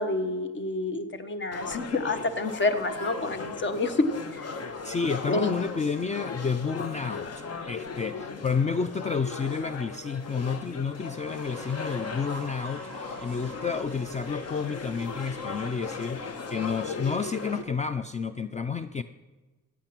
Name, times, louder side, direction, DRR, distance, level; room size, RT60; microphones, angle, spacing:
voice 1, 0.0-4.5 5.3-5.5, left 2 dB, 40° left, 10 dB, 1.3 m, -28 dB
sound 1, 1.5-17.6, left 4 dB, 55° left, 1.3 m, -38 dB
voice 2, 4.8-19.0, left 5 dB, 25° left, 12 dB, 0.4 m, -30 dB
sound 2, 10.9-17.2, right 2 dB, 5° left, 4.7 m, -49 dB
14.5 x 8.4 x 6.0 m, 1.2 s
cardioid pair, 90°, 30 cm